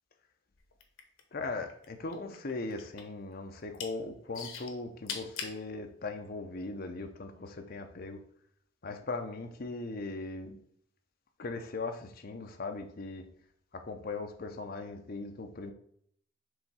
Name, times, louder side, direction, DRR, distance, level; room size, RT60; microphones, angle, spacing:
sound 1, 0.7-1.9 2.1-3.2 3.6-3.9 4.3-5.6 6.3-6.4, left 6 dB, 80° left, 1.0 m, -40 dB
voice 1, 1.3-8.2 8.8-10.6 11.4-13.3 13.7-15.7, left 3 dB, 45° left, 4 dB, 0.7 m, -39 dB
5.0 x 3.5 x 5.5 m, 0.66 s
head